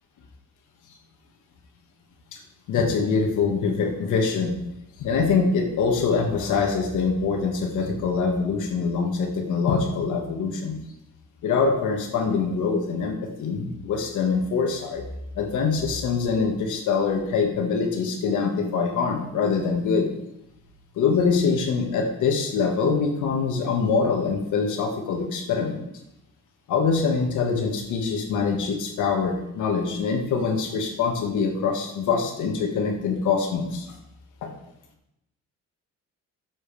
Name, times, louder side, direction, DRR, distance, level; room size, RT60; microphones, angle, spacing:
voice 1, 2.7-4.6 5.0-10.8 11.4-15.0 15.3-20.1 21.0-25.8 26.7-33.9 34.4-34.5, left 5 dB, 80° left, 3 dB, 1.8 m, -24 dB
11.0 x 7.5 x 3.5 m, 0.82 s
cardioid pair, 90°, 30 cm